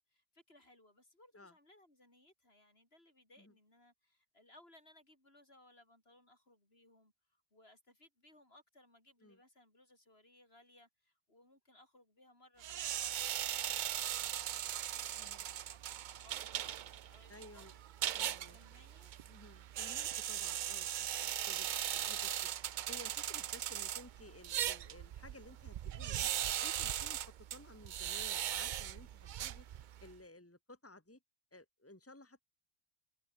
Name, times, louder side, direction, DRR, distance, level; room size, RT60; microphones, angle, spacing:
voice 1, 0.0-17.8 18.5-19.1, left 1 dB, 80° left, 6.8 m, -65 dB
sound 1, 12.6-30.1, right 11 dB, 60° right, 0.6 m, -39 dB
voice 2, 17.3-17.7 18.2-19.0 19.3-26.3 26.6-29.7 30.0-31.2 31.5-32.4, left 2 dB, 15° left, 2.2 m, -56 dB
omnidirectional pair, 1.0 m